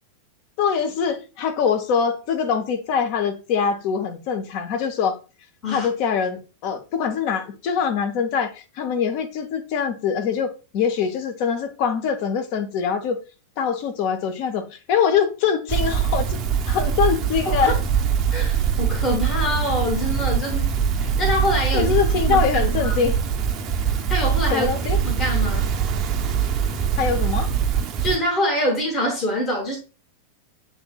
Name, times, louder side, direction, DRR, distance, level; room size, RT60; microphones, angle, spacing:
voice 1, 0.6-5.2 5.7-13.2 13.6-16.4 16.7-17.8 21.7-23.2 24.5-25.0 27.0-27.5, left 6 dB, 45° left, 0.7 m, -23 dB
sound 1, 15.7-28.2, right 7 dB, 35° right, 0.5 m, -23 dB
voice 2, 17.4-17.8 18.3-21.9 22.3-23.0 24.1-24.7 25.0-25.7 28.0-29.8, left 1 dB, 25° left, 1.2 m, -25 dB
7.5 x 2.8 x 2.3 m
figure-of-eight pair, 90°, 0 cm